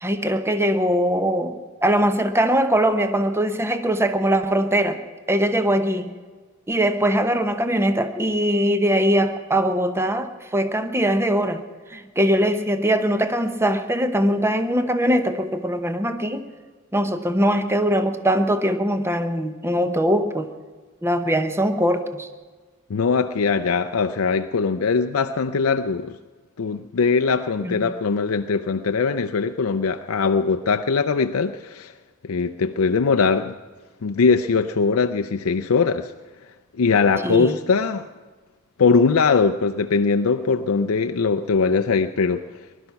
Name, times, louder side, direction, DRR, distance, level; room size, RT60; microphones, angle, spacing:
voice 1, 0.0-5.0 5.3-6.1 6.7-11.6 11.9-16.5 16.9-20.5 21.0-22.3 27.6-27.8 37.2-37.6, equal, 10° right, 0.9 m, -21 dB
voice 2, 22.9-26.2 26.6-31.9 32.2-33.6 34.0-36.1 36.8-38.1 38.8-42.5, left 5 dB, 75° left, 0.5 m, -21 dB
20.0 x 12.0 x 5.8 m
head